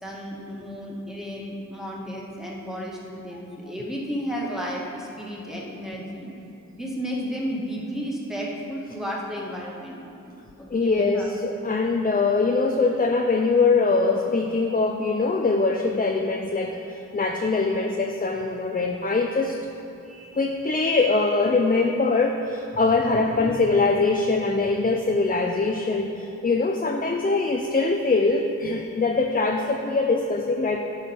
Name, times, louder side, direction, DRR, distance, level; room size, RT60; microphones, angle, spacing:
voice 1, 0.0-6.3 6.7-11.3 20.0-20.5 23.0-23.7 24.6-24.9, equal, ahead, -4 dB, 2.0 m, -33 dB
voice 2, 10.7-19.6 20.4-30.8, left 3 dB, 25° left, 3 dB, 0.6 m, -23 dB
12.5 x 4.9 x 5.3 m, 2.8 s
cardioid pair, 60°, 33 cm